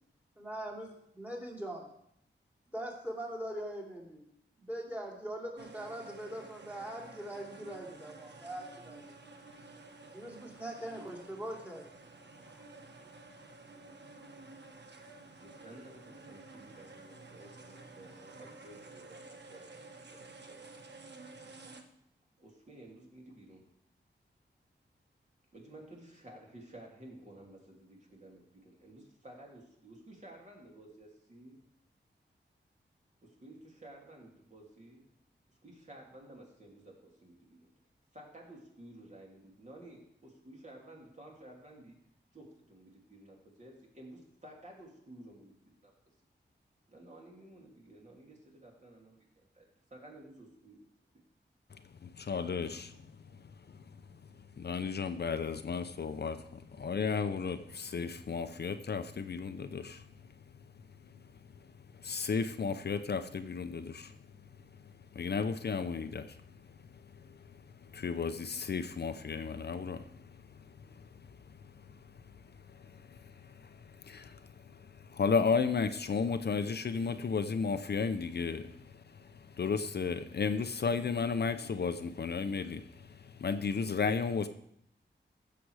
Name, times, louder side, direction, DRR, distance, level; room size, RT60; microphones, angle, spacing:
voice 1, 0.4-1.9 2.7-4.2 4.6-9.0 10.1-11.8 12.5-12.6, right 1 dB, 10° right, -1 dB, 2.8 m, -42 dB
sound 1, 5.6-21.8, right 3 dB, 65° right, 1.2 m, -52 dB
voice 2, 15.4-20.6 22.4-23.7 25.5-31.6 33.2-35.1 35.5-37.6 38.1-42.0 42.3-45.9 46.9-49.2 49.5-50.8, right 1 dB, 40° right, -1 dB, 3.0 m, -53 dB
voice 3, 51.7-60.3 61.0-61.1 61.6-64.2 64.8-84.5, left 5 dB, 60° left, 9 dB, 0.6 m, -35 dB
15.0 x 6.9 x 4.8 m, 0.73 s
wide cardioid pair, 105°, 19 cm